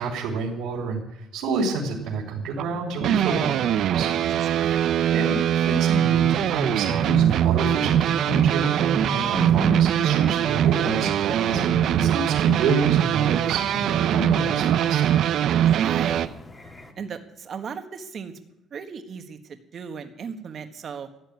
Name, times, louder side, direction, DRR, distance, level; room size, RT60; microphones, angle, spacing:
voice 1, 0.0-4.1 5.1-15.0, right 3 dB, 80° right, -5 dB, 3.4 m, -29 dB
sound 1, 2.5-16.3, right 10 dB, 60° right, 0.6 m, -22 dB
sound 2, 3.2-16.9, left 2 dB, 20° left, 2.0 m, -44 dB
voice 2, 4.5-4.9 15.6-16.4 17.0-18.3 18.7-21.1, right 6 dB, 40° right, 7 dB, 1.5 m, -36 dB
14.0 x 10.5 x 9.5 m, 0.91 s
cardioid pair, 140°, 0 cm